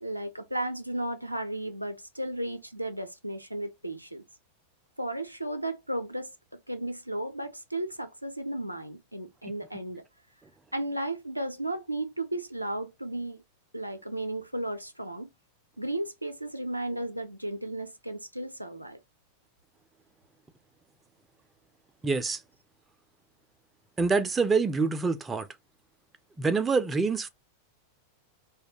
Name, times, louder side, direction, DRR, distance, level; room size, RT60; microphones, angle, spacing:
voice 1, 0.0-4.2 5.0-10.1 10.7-13.4 13.7-15.3 15.8-19.0, right 1 dB, 90° right, 0.4 m, -34 dB
voice 2, 22.0-22.4 24.0-25.5 26.4-27.3, right 4 dB, 15° right, 0.3 m, -26 dB
2.1 x 2.1 x 2.9 m
figure-of-eight pair, 90°, 0 cm